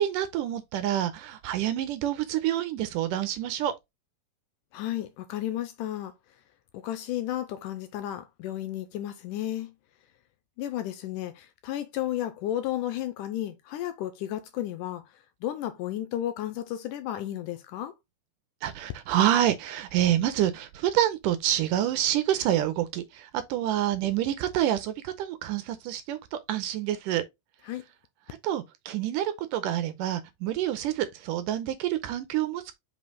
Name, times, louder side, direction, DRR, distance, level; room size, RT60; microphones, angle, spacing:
voice 1, 0.0-3.7 18.6-27.2 28.4-32.6, right 12 dB, 80° right, 2.1 m, -27 dB
voice 2, 4.7-6.1 6.7-9.7 10.6-17.9 27.6-27.8, left 12 dB, 80° left, 2.0 m, -33 dB
5.3 x 5.2 x 3.8 m
omnidirectional pair, 4.1 m